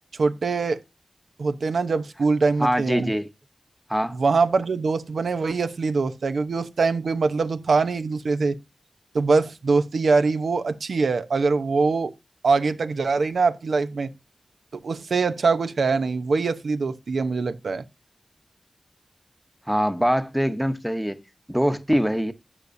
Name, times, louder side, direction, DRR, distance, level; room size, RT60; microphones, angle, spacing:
voice 1, 0.2-0.8 1.4-3.1 4.1-8.6 9.1-12.1 12.4-14.1 14.7-17.8, right 4 dB, 90° right, 0.8 m, -23 dB
voice 2, 2.6-3.3 3.9-4.2 19.7-21.2 21.5-22.3, equal, 5° right, 0.9 m, -23 dB
12.0 x 8.2 x 2.7 m
wide cardioid pair, 90°, 0 cm